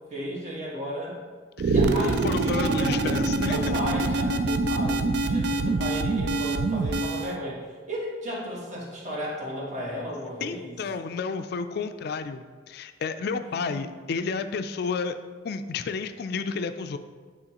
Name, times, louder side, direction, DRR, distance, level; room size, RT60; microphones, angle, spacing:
voice 1, 0.1-1.1 1.7-3.2 3.4-7.6 7.9-10.8 13.5-13.8, equal, 40° right, -5 dB, 1.5 m, -34 dB
sound 1, 1.6-7.4, right 3 dB, 65° right, 0.4 m, -25 dB
voice 2, 2.2-3.6 10.4-15.1 15.4-17.0, left 5 dB, 60° left, 9 dB, 0.3 m, -31 dB
8.9 x 3.7 x 2.9 m, 1.5 s
head